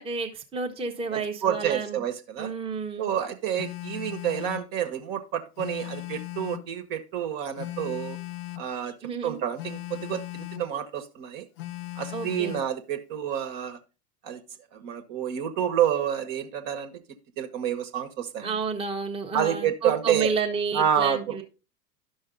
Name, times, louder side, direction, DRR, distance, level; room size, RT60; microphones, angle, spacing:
voice 1, 0.0-2.0 2.4-3.1 9.0-9.4 12.1-12.6 18.4-21.4, right 4 dB, 10° right, 1 dB, 1.1 m, -30 dB
voice 2, 1.1-2.5 3.0-8.2 8.6-9.0 9.2-11.5 11.9-13.8 14.2-14.4 14.7-16.9 17.4-18.5 19.3-20.3 20.7-21.4, right 9 dB, 45° right, 8 dB, 1.5 m, -29 dB
Telephone, 3.6-4.7 5.6-6.7 7.6-8.7 9.6-10.7 11.6-12.7, left 16 dB, 35° left, 0.4 m, -37 dB
11.5 x 6.2 x 3.9 m, 0.33 s
figure-of-eight pair, 95°, 47 cm